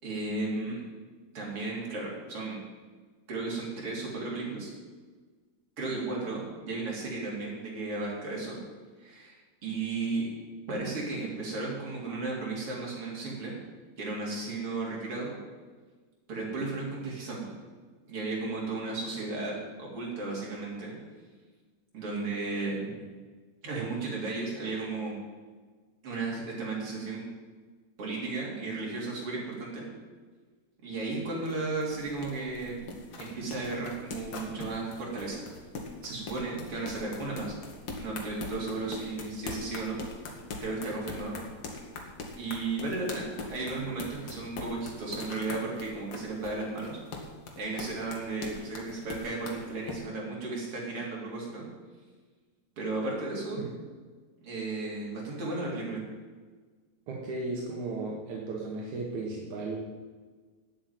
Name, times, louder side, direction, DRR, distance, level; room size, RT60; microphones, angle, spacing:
voice 1, 0.0-0.8 1.3-2.6 3.3-4.7 5.8-8.6 9.0-10.3 10.7-13.6 14.0-15.3 16.3-17.6 18.1-21.0 21.9-23.0 23.6-25.2 26.0-27.3 28.0-29.8 30.8-32.9 33.2-35.4 36.0-37.5 38.0-40.0 40.6-41.3 42.4-43.2 43.5-47.0 47.6-51.6 52.8-53.7 54.4-56.0, right 3 dB, 35° right, -3 dB, 3.7 m, -34 dB
sound 1, 30.9-50.0, left 3 dB, 75° left, 1.3 m, -41 dB
voice 2, 57.1-59.8, right 3 dB, 65° right, -2 dB, 2.0 m, -35 dB
9.0 x 8.3 x 9.3 m, 1.4 s
omnidirectional pair, 5.2 m